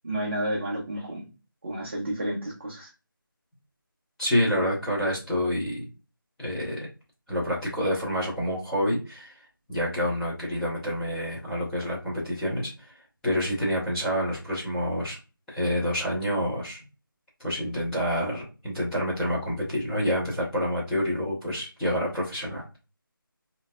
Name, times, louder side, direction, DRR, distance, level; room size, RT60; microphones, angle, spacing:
voice 1, 0.0-1.2 1.6-2.9, right 1 dB, 30° right, -3 dB, 0.7 m, -31 dB
voice 2, 4.2-5.8 6.4-6.9 7.3-9.3 9.7-12.9 13.2-15.2 15.5-16.8 17.4-22.6, equal, 5° left, -13 dB, 1.2 m, -28 dB
3.9 x 2.8 x 2.4 m, 0.31 s
figure-of-eight pair, 165°, 12 cm